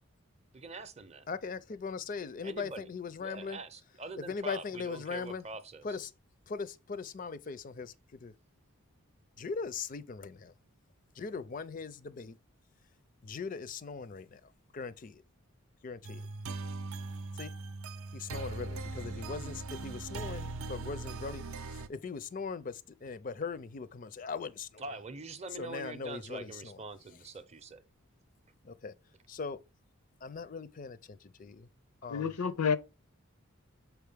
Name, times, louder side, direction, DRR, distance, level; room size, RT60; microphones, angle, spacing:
voice 1, 0.5-1.3 2.4-2.9 3.2-5.9 24.8-27.8, right 3 dB, 30° right, 0.5 m, -44 dB
voice 2, 1.3-3.6 4.2-5.5 5.8-6.1 6.5-8.3 9.4-10.5 11.1-12.4 13.2-15.2 15.8-16.3 17.3-17.5 18.1-25.0 25.5-26.8 28.6-28.9 29.3-29.6 30.2-31.7 32.0-32.3, left 5 dB, 35° left, 0.4 m, -40 dB
sound 1, 16.0-21.9, right 3 dB, 75° right, 0.6 m, -40 dB
voice 3, 32.1-32.8, left 6 dB, 90° left, 0.6 m, -29 dB
7.0 x 4.6 x 3.4 m
head